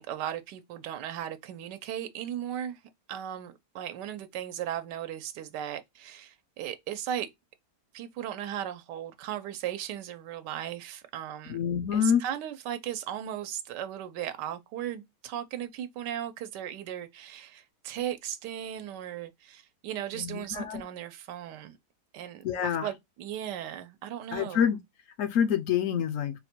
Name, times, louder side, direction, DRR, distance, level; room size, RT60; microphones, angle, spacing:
voice 1, 0.0-2.8 3.1-7.3 7.9-11.6 11.9-21.8 22.1-24.8, right 10 dB, 90° right, 1.2 m, -37 dB
voice 2, 11.5-12.2 20.1-20.8 22.4-22.9 24.3-24.8 25.2-26.3, left 8 dB, 70° left, 0.8 m, -27 dB
3.9 x 2.1 x 4.2 m
omnidirectional pair, 1.8 m